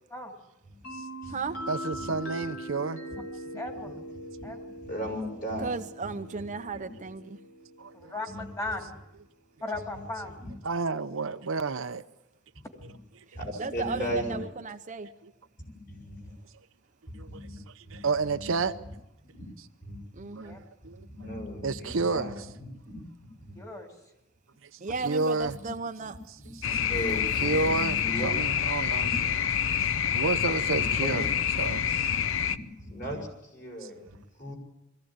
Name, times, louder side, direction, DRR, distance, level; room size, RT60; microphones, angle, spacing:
sound 1, 0.8-8.5, right 1 dB, 85° left, 5.3 m, -41 dB
voice 1, 1.7-3.0 6.7-6.8 7.8-8.2 10.7-12.0 15.2-15.3 17.1-17.4 17.8-18.8 20.3-20.5 20.8-21.0 21.6-22.5 24.6-24.7 25.0-25.6 26.5-26.8 27.4-29.1 29.8-29.9 30.1-31.2 31.6-32.2 33.8-33.9, right 4 dB, 70° right, 0.8 m, -30 dB
voice 2, 3.5-4.0 4.4-4.6 7.9-8.8 9.6-10.3 20.3-20.6 23.5-23.9 33.1-33.2, left 2 dB, 15° left, 2.8 m, -37 dB
voice 3, 4.8-5.8 6.0-6.9 8.2-8.4 12.8-12.9 13.3-14.4 15.7-16.2 17.3-17.6 17.9-18.1 18.4-18.5 19.3-19.5 19.8-20.0 20.4-20.6 20.9-22.3 22.6-23.6 26.0-28.3 29.0-29.1 29.9-30.2 30.8-31.2 31.6-33.3 33.5-34.5, equal, 45° left, 6.4 m, -37 dB
voice 4, 5.6-7.4 13.6-15.1 20.1-20.6 24.8-26.2, right 4 dB, 35° right, 0.7 m, -35 dB
sound 2, 26.6-32.6, left 8 dB, 65° left, 0.7 m, -27 dB
21.5 x 15.0 x 8.8 m
head